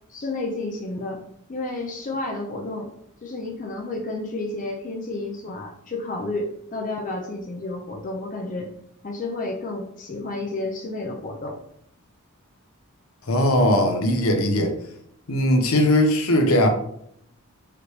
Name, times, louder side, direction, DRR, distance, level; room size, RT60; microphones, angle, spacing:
voice 1, 0.1-1.2 1.5-2.9 3.2-8.7 9.0-11.6, left 2 dB, 35° left, 1 dB, 0.5 m, -31 dB
voice 2, 13.3-14.7 15.3-16.7, left 1 dB, 70° left, 4 dB, 0.8 m, -19 dB
4.9 x 3.1 x 3.2 m, 0.70 s
head